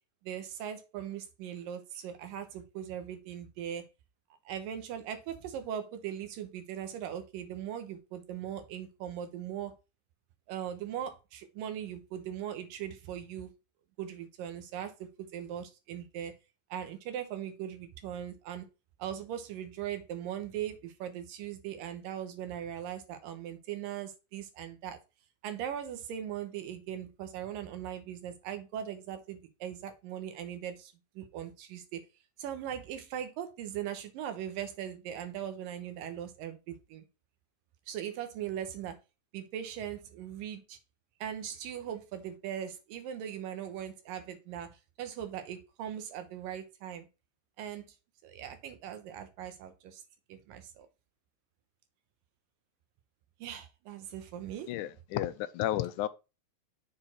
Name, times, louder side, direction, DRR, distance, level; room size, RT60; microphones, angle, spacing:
voice 1, 0.2-3.9 4.5-9.8 10.5-13.5 14.0-16.4 16.7-18.7 19.0-25.0 25.4-32.0 32.4-37.1 37.9-39.0 39.3-40.8 41.2-47.1 47.6-47.9 48.2-50.0 50.3-50.9 53.4-54.7, right 10 dB, 85° right, 2.7 m, -39 dB
voice 2, 54.7-56.1, left 13 dB, 80° left, 1.9 m, -32 dB
7.0 x 4.3 x 4.2 m
omnidirectional pair, 3.9 m